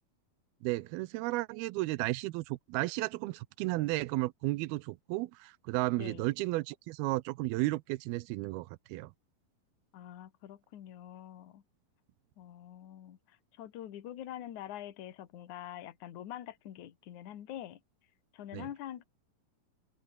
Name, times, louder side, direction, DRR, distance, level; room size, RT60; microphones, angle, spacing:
voice 1, 0.6-9.1 18.5-18.7, right 20 dB, 85° right, 2.6 m, -33 dB
voice 2, 9.9-11.6 12.4-17.8 18.3-19.0, left 11 dB, 60° left, 2.9 m, -45 dB
omnidirectional pair, 4.3 m